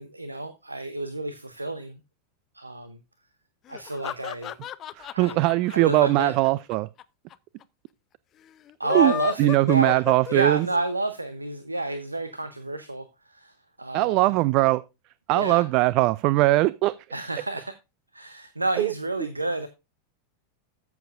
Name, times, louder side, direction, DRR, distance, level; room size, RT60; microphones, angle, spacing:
voice 1, 0.0-2.0 2.5-3.0 3.7-4.5 5.1-5.4 5.7-6.3 8.8-10.0 10.3-14.3 15.3-15.6 17.1-17.7 18.1-19.7, right 2 dB, 90° right, 0.7 m, -30 dB
sound 1, 3.7-7.0 7.3-7.4 7.6-7.7 8.7-10.8, left 11 dB, 35° left, 0.6 m, -34 dB
voice 2, 5.0-6.9 8.9-9.1 9.4-10.7 13.9-14.8 15.3-16.9 18.8-18.9, right 19 dB, 45° right, 0.4 m, -21 dB
13.5 x 7.1 x 2.5 m
figure-of-eight pair, 90°, 0 cm